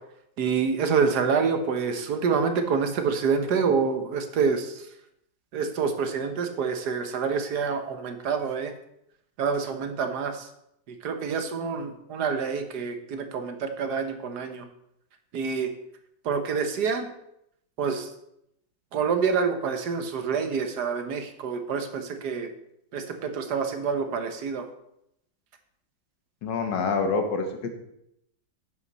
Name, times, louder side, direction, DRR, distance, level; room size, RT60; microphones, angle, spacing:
voice 1, 0.4-4.9 5.5-8.7 9.4-10.5 10.9-14.7 15.3-15.7 16.2-17.1 17.8-18.1 18.9-22.5 22.9-24.7, right 5 dB, 65° right, 7 dB, 1.5 m, -27 dB
voice 2, 26.4-27.7, left 4 dB, 75° left, 6 dB, 1.9 m, -26 dB
10.5 x 7.3 x 4.1 m, 0.78 s
omnidirectional pair, 2.0 m